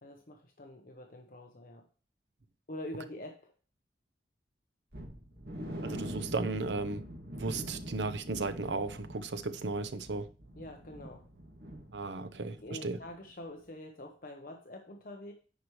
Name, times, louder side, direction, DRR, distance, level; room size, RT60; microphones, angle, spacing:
voice 1, 0.0-1.9 2.7-3.5 10.6-11.3 12.5-15.3, left 1 dB, 50° left, 0.9 m, -45 dB
sound 1, 4.9-12.7 12.9-13.1 13.5-13.6, equal, 65° right, 2.1 m, -44 dB
voice 2, 5.8-7.0 7.3-10.3 11.9-13.0, right 3 dB, 80° right, 0.7 m, -35 dB
10.0 x 4.9 x 3.1 m
head